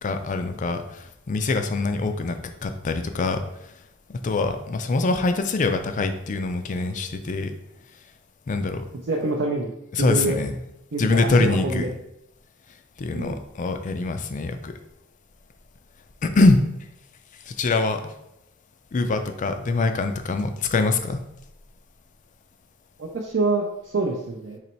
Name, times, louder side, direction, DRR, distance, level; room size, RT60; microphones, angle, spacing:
voice 1, 0.0-3.4 4.1-7.5 8.5-8.8 9.9-10.5 11.0-11.9 13.0-14.7 16.2-16.6 17.5-18.1 18.9-21.2, left 3 dB, 35° left, 7 dB, 0.4 m, -24 dB
voice 2, 9.1-10.4 10.9-11.9 13.1-13.4 23.0-24.6, right 2 dB, 55° right, -2 dB, 0.5 m, -26 dB
4.0 x 3.0 x 4.4 m, 0.84 s
head